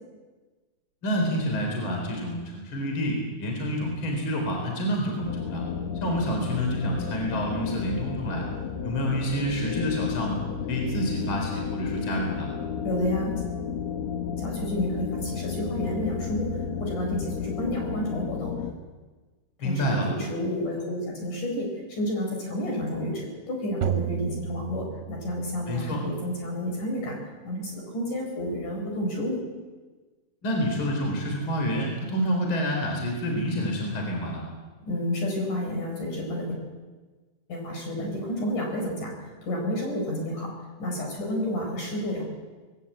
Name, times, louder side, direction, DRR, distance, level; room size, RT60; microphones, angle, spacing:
voice 1, 1.0-5.6 6.0-8.5 8.8-10.4 10.7-12.5 19.6-20.1 25.7-26.0 30.4-34.5, equal, 30° left, 1 dB, 4.2 m, -28 dB
sound 1, 5.2-18.7, left 7 dB, 80° left, 1.5 m, -32 dB
voice 2, 12.8-13.4 14.4-18.5 19.6-27.2 27.4-29.4 34.9-36.6 37.5-39.1 39.4-40.5 40.8-42.2, equal, 45° left, 1 dB, 5.9 m, -30 dB
sound 2, 23.8-25.8, right 11 dB, 85° right, 3.1 m, -32 dB
20.5 x 17.0 x 8.6 m, 1.3 s
omnidirectional pair, 5.2 m